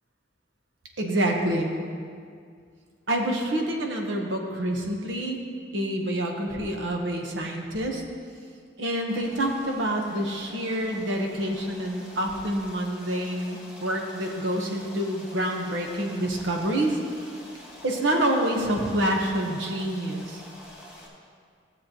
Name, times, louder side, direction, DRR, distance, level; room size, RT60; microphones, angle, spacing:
voice 1, 1.0-1.7 3.1-5.4 5.7-8.0 8.8-17.0 17.8-20.4, right 1 dB, 85° right, 1 dB, 1.2 m, -27 dB
Stream, 9.1-21.1, left 1 dB, 5° right, 1.7 m, -47 dB
16.0 x 7.2 x 3.0 m, 2.1 s
head